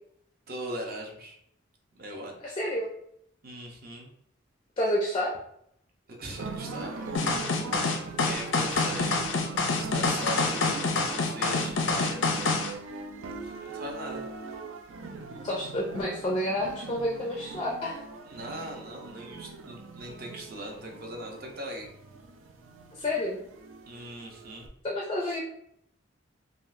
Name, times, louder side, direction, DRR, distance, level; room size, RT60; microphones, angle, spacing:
voice 1, 0.5-1.4 1.9-2.4 3.4-4.1 6.1-7.6 7.8-12.2 13.4-14.3 18.2-21.9 23.9-24.7 25.2-25.4, right 1 dB, 50° right, 1 dB, 0.7 m, -40 dB
voice 2, 2.4-2.9 4.8-5.3 15.4-18.0 22.9-23.4 24.8-25.4, left 1 dB, 25° left, -2 dB, 0.4 m, -29 dB
sound 1, 6.3-24.7, right 3 dB, 90° right, 0.4 m, -41 dB
sound 2, 7.1-12.7, left 3 dB, 85° left, 0.5 m, -27 dB
3.6 x 2.4 x 2.5 m, 0.73 s
head